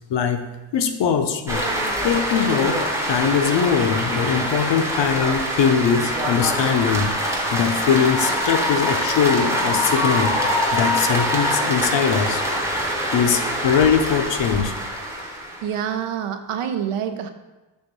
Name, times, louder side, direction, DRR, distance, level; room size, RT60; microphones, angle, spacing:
voice 1, 0.1-0.5 0.7-2.8 3.1-7.1 7.5-12.4 13.1-14.7, left 7 dB, 60° left, 7 dB, 0.6 m, -21 dB
sound 1, 1.5-15.7, equal, 5° right, 0.7 m, -24 dB
voice 2, 15.6-17.3, right 8 dB, 85° right, 8 dB, 0.7 m, -26 dB
6.3 x 3.5 x 5.2 m, 1.1 s
wide cardioid pair, 175°, 50 cm